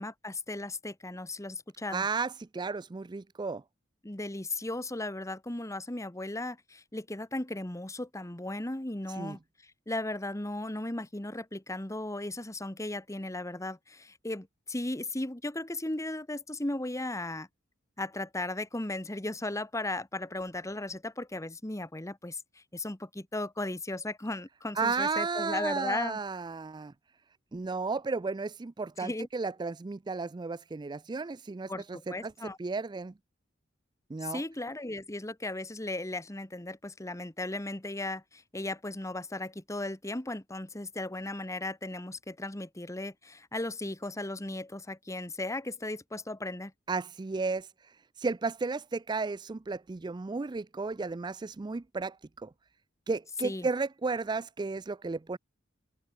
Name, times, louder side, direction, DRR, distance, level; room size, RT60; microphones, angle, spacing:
voice 1, 0.0-2.1 4.0-17.5 18.0-26.2 29.0-29.3 31.7-32.6 34.2-46.7 53.4-53.7, left 2 dB, 15° left, 1.3 m, -36 dB
voice 2, 1.9-3.6 9.2-9.4 24.8-26.9 27.5-32.0 32.2-32.3 32.6-33.1 34.1-34.4 46.9-47.7 48.2-52.5 53.1-55.4, right 4 dB, 25° right, 0.4 m, -33 dB
open air
head